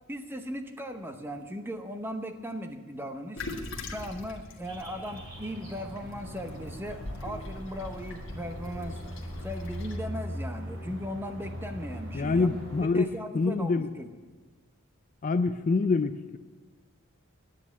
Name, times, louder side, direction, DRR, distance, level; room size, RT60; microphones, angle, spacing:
voice 1, 0.1-3.5 3.9-9.0 9.4-12.5 12.8-14.1, equal, 10° right, 6 dB, 0.8 m, -38 dB
Toilet flush, 3.4-10.0, left 2 dB, 55° left, 1.5 m, -42 dB
sound 1, 4.6-12.8, equal, 65° right, 4.2 m, -40 dB
voice 2, 12.1-13.9 15.2-16.4, left 4 dB, 35° left, 11 dB, 0.3 m, -26 dB
10.0 x 9.6 x 8.2 m, 1.3 s
head